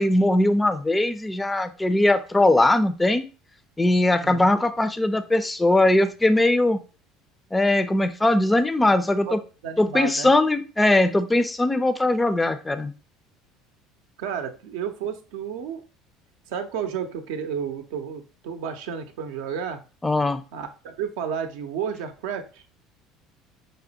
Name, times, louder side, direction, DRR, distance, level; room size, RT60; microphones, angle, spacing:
voice 1, 0.0-3.2 3.8-6.8 7.5-9.4 9.8-12.9 20.0-20.4, left 2 dB, 15° left, 11 dB, 0.4 m, -20 dB
voice 2, 4.2-4.6 8.9-9.4 9.6-10.3 14.2-15.8 16.5-19.8 20.5-22.6, right 7 dB, 75° right, 6 dB, 0.5 m, -32 dB
5.1 x 2.1 x 2.7 m, 0.35 s
hypercardioid pair, 75°, 0 cm